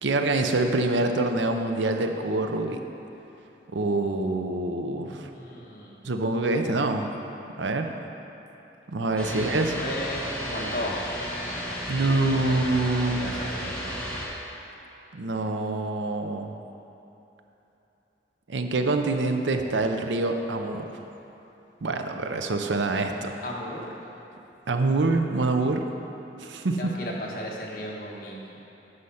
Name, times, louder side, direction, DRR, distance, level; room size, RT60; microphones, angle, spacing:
voice 1, 0.0-2.8 3.7-5.3 6.0-7.1 7.6-7.9 8.9-9.9 11.9-13.4 15.1-16.5 18.5-21.0 21.8-23.4 24.7-25.8 26.4-26.9, right 2 dB, 85° right, 5 dB, 0.6 m, -26 dB
voice 2, 4.9-6.0 9.3-9.5 9.8-11.0 11.9-12.5 13.0-13.9 23.1-23.9 26.8-28.6, left 1 dB, 50° left, -3 dB, 1.4 m, -36 dB
sound 1, 9.2-14.3, equal, 5° left, 1.3 m, -33 dB
9.7 x 5.6 x 5.7 m, 3.0 s
head